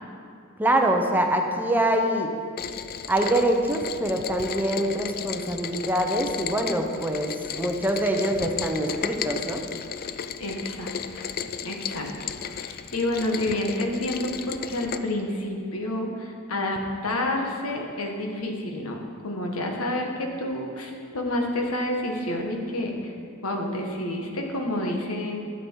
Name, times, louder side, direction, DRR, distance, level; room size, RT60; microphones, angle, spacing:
voice 1, 0.6-2.3 3.1-9.6, right 1 dB, 10° right, 3 dB, 0.7 m, -24 dB
Rain, 2.6-15.0, left 7 dB, 45° left, 0.4 m, -34 dB
voice 2, 10.4-11.3 11.6-23.1 23.4-25.4, left 1 dB, 90° left, 2 dB, 1.4 m, -29 dB
12.0 x 8.1 x 4.6 m, 2.3 s
head